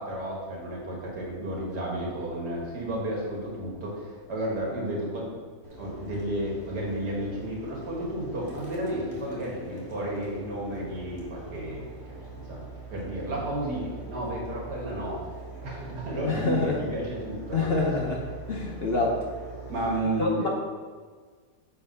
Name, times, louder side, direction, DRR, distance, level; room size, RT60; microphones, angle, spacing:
voice 1, 0.0-5.4 5.8-12.2 12.5-12.6 12.9-15.3 15.6-17.7 19.7-20.5, right 1 dB, 85° right, -3 dB, 2.4 m, -32 dB
sound 1, 5.6-19.9, right 4 dB, 20° right, 1.6 m, -43 dB
voice 2, 16.2-16.8 17.5-18.2 18.5-19.2 19.8-19.9 20.2-20.5, left 3 dB, 45° left, -1 dB, 0.8 m, -26 dB
6.6 x 4.7 x 5.5 m, 1.6 s
omnidirectional pair, 1.7 m